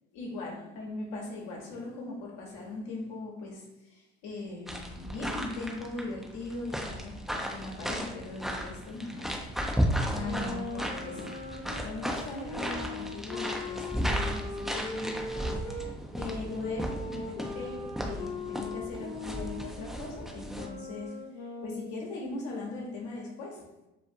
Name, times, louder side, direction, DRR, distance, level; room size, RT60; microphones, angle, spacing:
voice 1, 0.1-9.4 9.8-11.3 11.8-15.9 16.2-23.6, left 2 dB, 65° left, -1 dB, 0.9 m, -40 dB
sound 1, 4.7-20.7, equal, ahead, 0.3 m, -35 dB
sound 2, 10.1-15.9 16.6-22.1, left 3 dB, 90° left, 0.5 m, -40 dB
2.5 x 2.4 x 2.7 m, 0.96 s
hypercardioid pair, 65°, 31 cm